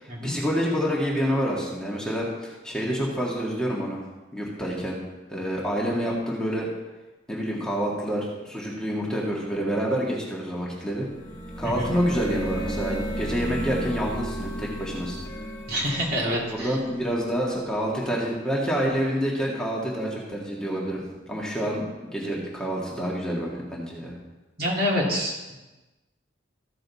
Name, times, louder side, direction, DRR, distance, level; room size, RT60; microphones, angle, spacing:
voice 1, 0.0-4.0 4.3-5.0 5.3-6.7 7.3-11.1 11.6-15.2 16.5-21.0 21.3-24.1, equal, 5° left, -5 dB, 1.7 m, -28 dB
sound 1, 10.9-17.7, equal, 20° left, 1.8 m, -34 dB
voice 2, 15.7-16.8 24.6-25.5, equal, 55° right, -4 dB, 2.7 m, -27 dB
14.5 x 6.7 x 4.1 m, 1.1 s
head